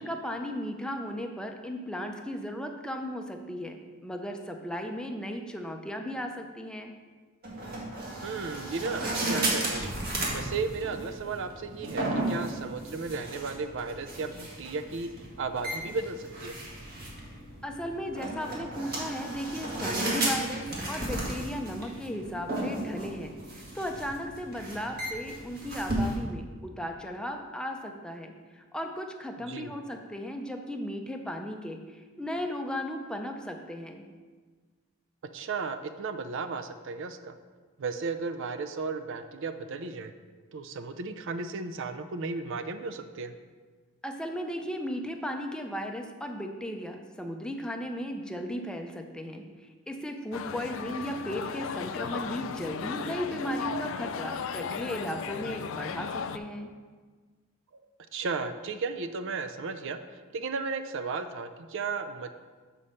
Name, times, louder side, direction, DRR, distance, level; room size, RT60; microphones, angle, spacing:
voice 1, 0.0-6.9 17.6-34.0 44.0-56.7, equal, 5° left, 3 dB, 0.5 m, -36 dB
sound 1, 7.4-26.1, right 1 dB, 45° right, 1.8 m, -34 dB
voice 2, 8.2-9.9 10.3-15.1 15.4-16.5 29.5-29.7 35.3-37.4 37.8-40.1 40.5-43.3 55.5-55.6 57.7-57.8 58.1-60.0 60.3-62.3, right 4 dB, 60° right, 10 dB, 0.5 m, -34 dB
sound 2, 50.3-56.4, left 6 dB, 65° left, 0.4 m, -36 dB
7.0 x 4.2 x 6.4 m, 1.4 s
head